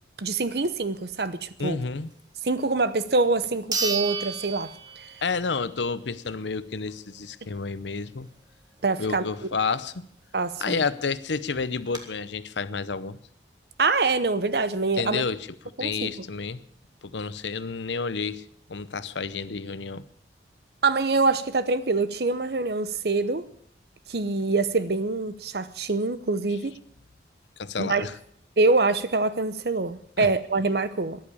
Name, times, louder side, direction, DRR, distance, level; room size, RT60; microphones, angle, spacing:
voice 1, 0.2-1.8 2.4-4.7 8.8-9.2 10.3-10.8 13.8-15.2 15.8-16.1 20.8-23.4 24.1-26.7 27.8-28.1 28.6-31.2, right 3 dB, 60° right, 14 dB, 0.9 m, -25 dB
voice 2, 1.6-2.1 5.2-8.3 9.0-10.0 10.6-13.2 15.0-15.4 15.8-16.6 17.0-18.4 18.7-20.0 27.6-28.1 30.2-30.3, left 4 dB, 85° left, 15 dB, 0.8 m, -30 dB
sound 1, 2.9-3.0 3.7-5.5 5.9-6.0 10.6-10.7 10.9-11.0 11.5-12.0, right 5 dB, 25° right, 1.7 m, -31 dB
13.5 x 11.0 x 8.5 m, 0.66 s
head